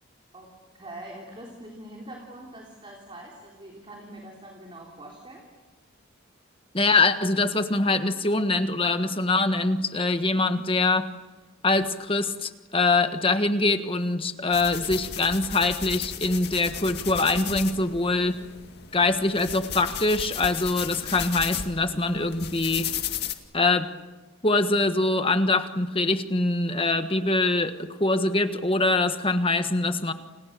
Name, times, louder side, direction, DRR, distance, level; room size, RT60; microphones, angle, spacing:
voice 1, 0.3-5.5, right 1 dB, 25° right, -1 dB, 3.6 m, -43 dB
voice 2, 6.7-11.1 11.6-18.4 18.9-22.9 23.5-23.9 24.4-30.1, left 3 dB, 25° left, 8 dB, 1.4 m, -24 dB
sound 1, 14.5-23.3, left 8 dB, 50° left, 2.1 m, -35 dB
30.0 x 29.0 x 6.8 m, 1.2 s
head